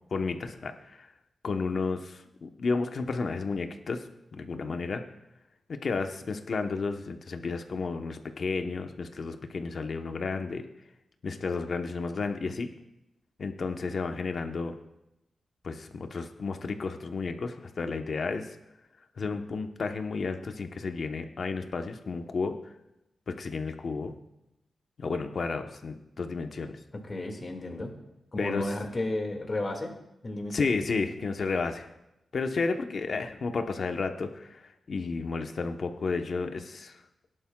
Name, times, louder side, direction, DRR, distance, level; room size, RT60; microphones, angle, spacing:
voice 1, 0.1-1.1 1.4-5.0 5.7-10.6 11.2-12.7 13.4-14.8 15.6-18.6 19.2-22.7 23.3-24.2 25.0-26.8 28.4-28.7 30.5-31.9 32.3-37.0, left 4 dB, 55° left, 6 dB, 1.0 m, -32 dB
voice 2, 27.0-27.9 28.3-29.9 30.2-30.7, left 2 dB, 35° left, 2 dB, 2.0 m, -33 dB
17.5 x 11.0 x 2.3 m, 0.89 s
wide cardioid pair, 100°, 0 cm